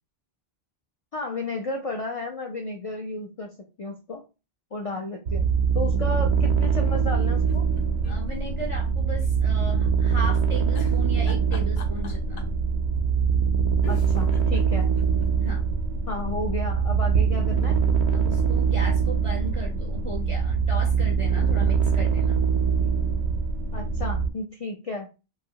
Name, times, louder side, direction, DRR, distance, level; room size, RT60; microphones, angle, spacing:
voice 1, 1.1-4.2 4.7-7.7 13.9-14.9 16.1-17.8 22.8-22.9 23.7-25.1, left 2 dB, 55° left, 1 dB, 0.4 m, -33 dB
sound 1, 5.3-24.3, right 6 dB, 90° right, 0.9 m, -23 dB
sound 2, 7.4-9.3 9.6-9.7 10.7-12.6 13.5-13.6 13.8-15.6 16.0-16.1 16.3-16.4, left 5 dB, 75° left, 0.8 m, -42 dB
voice 2, 8.1-12.5 15.3-15.6 18.1-22.4, right 1 dB, 45° right, 1 dB, 0.4 m, -36 dB
2.8 x 2.4 x 2.6 m, 0.30 s
omnidirectional pair, 1.1 m